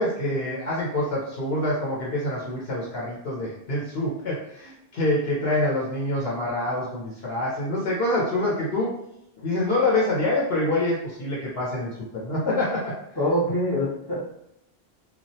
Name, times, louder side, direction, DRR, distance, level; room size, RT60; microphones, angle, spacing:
voice 1, 0.0-8.9 9.4-12.9, left 1 dB, 70° left, -6 dB, 0.9 m, -26 dB
voice 2, 13.2-14.2, equal, 35° left, -7 dB, 0.4 m, -24 dB
2.3 x 2.0 x 2.6 m, 0.82 s
omnidirectional pair, 1.1 m